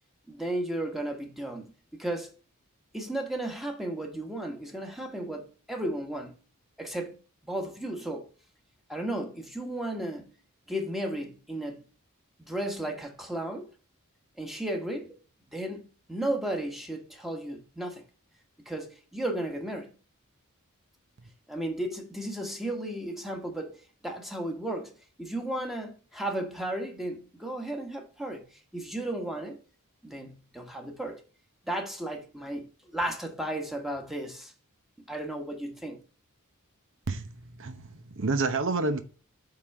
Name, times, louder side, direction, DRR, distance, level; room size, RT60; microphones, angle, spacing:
voice 1, 0.3-2.3 2.9-6.3 6.8-7.2 7.4-8.3 8.9-10.3 10.7-11.9 12.4-13.7 14.4-15.2 15.5-18.0 18.6-19.9 21.5-29.6 30.0-31.2 31.6-34.5 35.1-36.0, right 1 dB, ahead, 1.3 m, -34 dB
voice 2, 37.1-39.0, right 3 dB, 60° right, 0.9 m, -30 dB
8.4 x 3.8 x 4.2 m
head